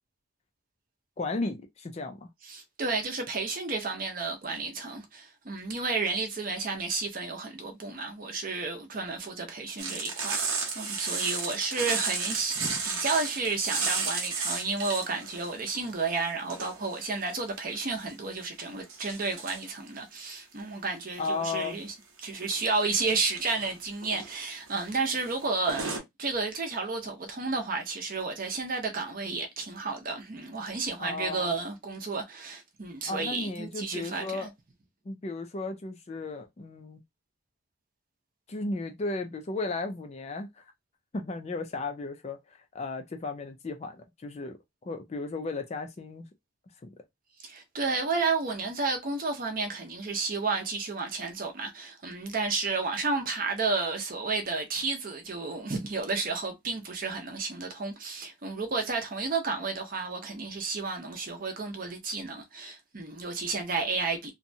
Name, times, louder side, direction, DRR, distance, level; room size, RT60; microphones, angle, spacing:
voice 1, 1.2-2.3 21.2-21.8 31.0-31.5 33.1-34.5 35.1-37.0 38.5-40.6 41.1-42.4 42.7-44.6 44.8-46.2 46.8-46.9, left 3 dB, 30° left, 0.3 m, -34 dB
voice 2, 2.5-21.9 22.2-25.9 26.2-34.5 47.4-64.3, right 4 dB, 40° right, 0.6 m, -32 dB
sound 1, 9.8-15.5 15.8-17.0 17.6-18.1 18.9-19.6 21.1-21.8 22.3-22.6 22.9-23.8 24.0-24.3 24.7-24.9 25.1-25.3 25.7-26.0, right 4 dB, 75° right, 0.8 m, -33 dB
2.7 x 2.2 x 2.6 m
head